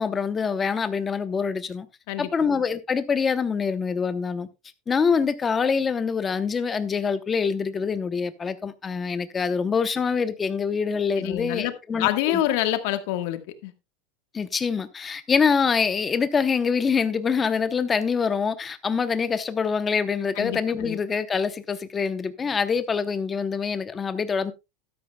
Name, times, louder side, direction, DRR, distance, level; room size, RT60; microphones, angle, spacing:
voice 1, 0.0-1.9 2.2-4.5 4.9-12.4 14.3-24.5, left 5 dB, 15° left, 0.8 m, -25 dB
voice 2, 11.2-13.7 20.4-21.0, left 13 dB, 50° left, 1.4 m, -27 dB
13.5 x 12.5 x 2.2 m
supercardioid pair, 175°, 0 cm